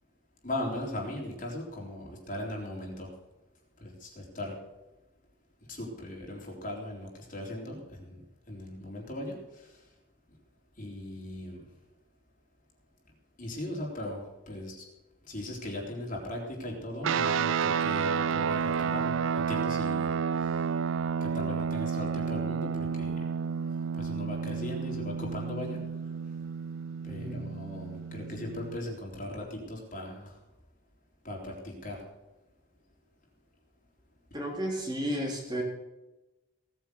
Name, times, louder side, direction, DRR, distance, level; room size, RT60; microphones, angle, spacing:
voice 1, 0.4-3.1 3.8-4.6 5.7-8.2 8.5-9.8 10.8-11.7 13.4-14.9 15.3-20.1 20.4-20.6 21.2-23.2 23.9-25.8 27.0-30.3 31.2-32.0, left 1 dB, 40° left, -1 dB, 3.9 m, -38 dB
sound 1, 17.0-28.8, right 6 dB, 65° right, 0.4 m, -31 dB
voice 2, 27.1-27.5 34.3-35.6, equal, 20° right, -2 dB, 4.0 m, -33 dB
18.0 x 9.3 x 6.9 m, 1.0 s
head